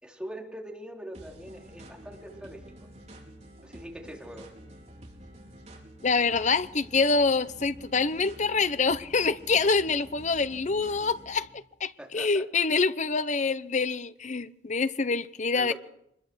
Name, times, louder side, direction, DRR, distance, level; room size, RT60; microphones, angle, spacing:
voice 1, 0.0-2.6 3.6-4.5 12.0-12.4 15.5-15.7, right 1 dB, 5° right, 4.0 m, -42 dB
sound 1, 1.1-11.5, right 1 dB, 40° right, 4.7 m, -49 dB
voice 2, 6.0-15.7, left 4 dB, 45° left, 0.9 m, -26 dB
25.0 x 21.5 x 6.3 m
head